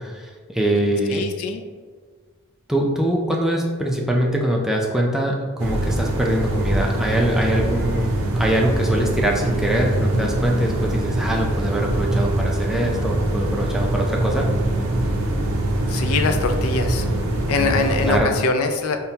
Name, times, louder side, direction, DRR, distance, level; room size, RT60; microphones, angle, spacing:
voice 1, 0.0-1.2 2.7-14.5 17.6-18.4, right 1 dB, ahead, -1 dB, 0.3 m, -23 dB
voice 2, 1.1-1.6 15.9-17.1 17.5-19.1, left 4 dB, 70° left, 6 dB, 0.4 m, -23 dB
sound 1, 5.6-18.2, right 1 dB, 75° right, 0.5 m, -23 dB
5.5 x 2.2 x 2.7 m, 1.5 s
head